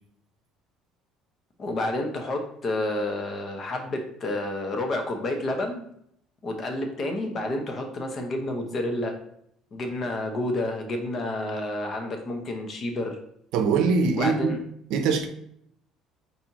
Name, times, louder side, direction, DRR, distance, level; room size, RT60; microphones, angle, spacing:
voice 1, 1.6-5.8 6.4-9.1 9.7-13.2 14.2-14.6, left 1 dB, 35° left, 4 dB, 0.9 m, -29 dB
voice 2, 13.5-14.5 14.9-15.3, right 5 dB, 75° right, 6 dB, 0.6 m, -22 dB
4.2 x 4.1 x 2.9 m, 0.71 s
cardioid pair, 130°, 0 cm